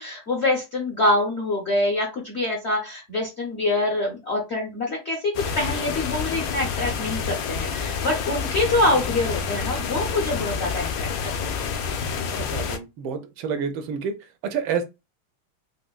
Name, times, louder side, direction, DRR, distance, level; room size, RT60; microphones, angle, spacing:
voice 1, 0.0-11.6, left 2 dB, 55° left, 0.7 m, -25 dB
sound 1, 5.3-12.8, left 6 dB, 75° left, 1.2 m, -28 dB
voice 2, 12.3-14.1 14.4-14.8, right 6 dB, 80° right, 1.3 m, -28 dB
4.9 x 2.1 x 2.3 m
omnidirectional pair, 2.3 m